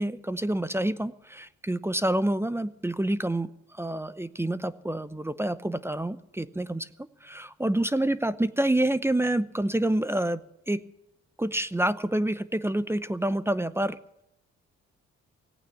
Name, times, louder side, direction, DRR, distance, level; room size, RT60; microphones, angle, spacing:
voice 1, 0.0-6.9 7.2-10.8 11.4-14.0, right 1 dB, 10° right, 14 dB, 0.7 m, -28 dB
17.0 x 9.0 x 8.5 m, 0.80 s
cardioid pair, 90°, 30 cm